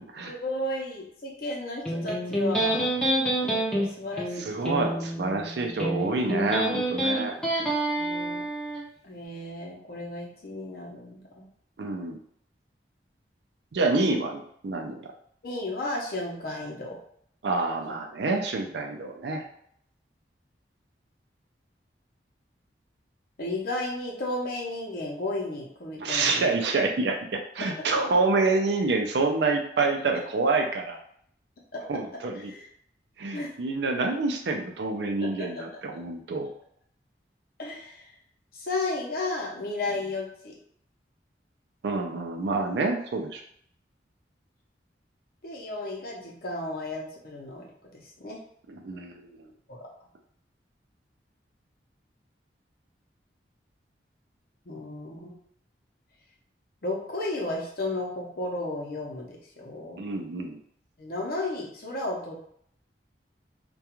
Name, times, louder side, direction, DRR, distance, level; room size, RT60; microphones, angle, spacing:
voice 1, 0.3-2.9 3.4-5.1 5.6-5.8 7.9-8.5 9.0-11.5 15.4-17.0 17.9-18.0 23.4-26.5 32.3-32.6 33.3-33.5 35.2-35.5 37.6-38.1 38.5-40.5 45.4-47.7 47.9-48.4 49.7-49.8 54.7-55.3 56.8-60.0 61.0-62.4, left 2 dB, 55° left, -1 dB, 0.6 m, -33 dB
Electric guitar, 1.9-8.8, right 1 dB, 5° left, 0.5 m, -28 dB
voice 2, 4.5-7.4 11.8-12.2 13.7-15.0 17.4-19.4 26.0-31.0 31.9-32.5 33.2-36.5 41.8-43.4 48.7-49.3 60.0-60.6, right 3 dB, 70° right, 3 dB, 0.4 m, -27 dB
2.3 x 2.2 x 2.9 m, 0.66 s
head